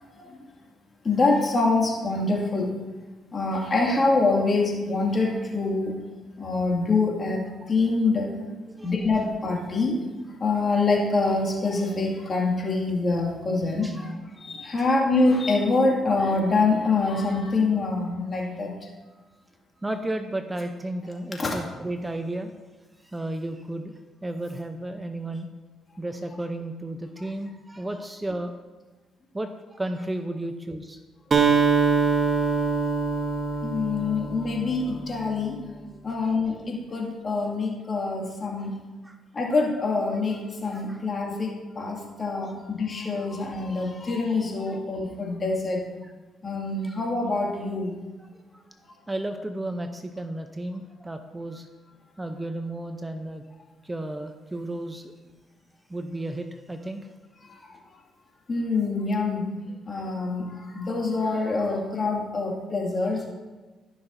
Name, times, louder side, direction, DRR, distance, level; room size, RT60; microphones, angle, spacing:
voice 1, 1.0-2.7 3.3-5.9 6.4-7.4 7.7-8.3 8.8-10.0 10.4-13.9 14.5-18.7 21.4-21.5 33.6-35.6 36.0-38.7 39.4-45.8 46.4-47.9 58.5-59.5 59.9-60.5 60.7-63.3, left 3 dB, 40° left, -1 dB, 2.2 m, -25 dB
voice 2, 8.7-9.1 13.8-14.1 14.8-14.9 19.1-19.4 19.8-22.5 23.0-25.5 26.0-28.5 29.3-31.0 31.9-32.5 34.4-34.5 36.1-36.4 38.6-38.7 39.0-39.2 40.7-41.0 43.0-43.3 43.9-44.0 44.7-44.8 46.8-47.0 48.2-48.7 49.1-51.7 52.2-53.4 53.8-55.1 55.9-57.1, right 1 dB, 15° right, 6 dB, 0.6 m, -34 dB
Acoustic guitar, 31.3-35.2, right 5 dB, 45° right, 1.1 m, -24 dB
14.5 x 5.8 x 2.7 m, 1.3 s
supercardioid pair, 70°, 0 cm